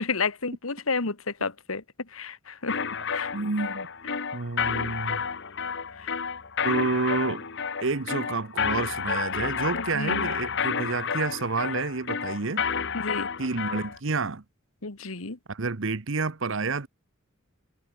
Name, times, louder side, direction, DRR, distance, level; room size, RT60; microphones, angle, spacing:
voice 1, 0.0-1.8 2.1-2.8 3.1-3.3 4.0-4.1 6.0-6.1 9.7-10.3 12.9-13.3 14.8-15.4, left 4 dB, 90° left, 1.8 m, -31 dB
sound 1, 2.7-14.0, left 6 dB, 60° left, 1.5 m, -30 dB
voice 2, 3.3-3.9 4.3-5.2 6.6-7.5 7.8-12.7 13.4-14.4 15.5-16.9, right 3 dB, 65° right, 1.1 m, -29 dB
head